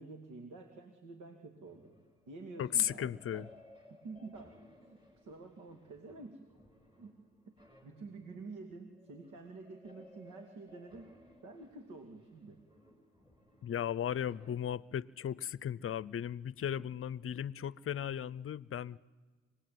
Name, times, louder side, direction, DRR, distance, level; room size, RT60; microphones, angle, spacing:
voice 1, 0.0-1.9 2.3-3.5 3.9-6.4 7.0-7.2 7.5-7.6 7.8-11.1 11.4-12.6, right 3 dB, 80° right, 2.6 m, -49 dB
sound 1, 1.6-14.6, left 1 dB, 15° right, 5.9 m, -62 dB
voice 2, 2.6-3.5 13.6-19.0, left 9 dB, 45° left, 0.7 m, -36 dB
25.5 x 20.0 x 9.4 m
cardioid pair, 90°, 30 cm